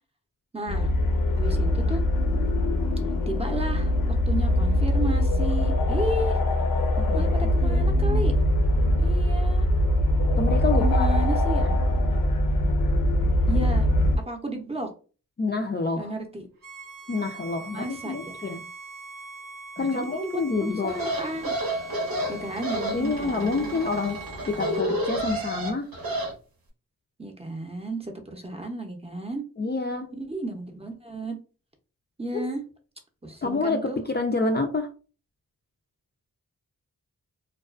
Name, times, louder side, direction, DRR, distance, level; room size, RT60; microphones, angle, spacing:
voice 1, 0.5-0.9 1.4-2.0 3.3-6.4 7.1-8.3 9.0-9.7 10.8-11.7 13.5-13.9 14.3-14.9 16.0-16.5 17.7-18.6 19.8-21.5 22.3-23.8 24.6-24.9 27.2-29.4 30.1-31.4 32.2-32.6 33.2-34.0, right 1 dB, 15° right, 3 dB, 0.6 m, -33 dB
sound 1, 0.7-14.2, left 1 dB, 75° left, 0.6 m, -22 dB
voice 2, 7.0-8.4 10.4-11.1 15.4-16.1 17.1-18.6 19.8-21.0 22.9-25.9 29.6-30.2 33.4-34.9, left 3 dB, 30° left, 3 dB, 0.4 m, -28 dB
Bowed string instrument, 16.6-24.9, right 4 dB, 65° right, 0.7 m, -43 dB
sound 2, 20.9-26.3, equal, 90° right, 0.9 m, -30 dB
2.3 x 2.2 x 2.3 m, 0.35 s
cardioid pair, 65°, 35 cm